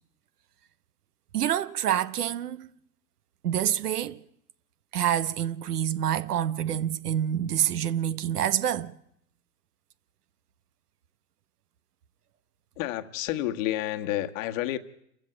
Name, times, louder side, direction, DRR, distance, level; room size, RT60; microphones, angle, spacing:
voice 1, 1.3-2.7 3.4-4.2 4.9-8.9, right 10 dB, 80° right, 1.2 m, -27 dB
voice 2, 12.8-14.8, left 14 dB, 55° left, 1.7 m, -30 dB
28.0 x 15.0 x 8.6 m
hypercardioid pair, 105°, 46 cm